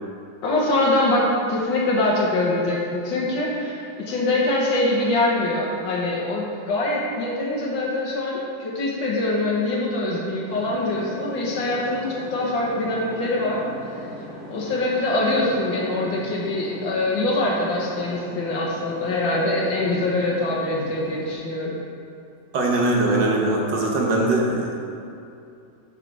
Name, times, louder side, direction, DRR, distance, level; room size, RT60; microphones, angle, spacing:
voice 1, 0.4-13.6 14.5-21.8, left 2 dB, 90° left, -4 dB, 1.8 m, -24 dB
sound 1, 10.5-21.3, equal, ahead, 1.2 m, -38 dB
voice 2, 22.5-24.8, right 2 dB, 75° right, -2 dB, 1.9 m, -21 dB
7.3 x 4.8 x 6.0 m, 2.6 s
omnidirectional pair, 2.0 m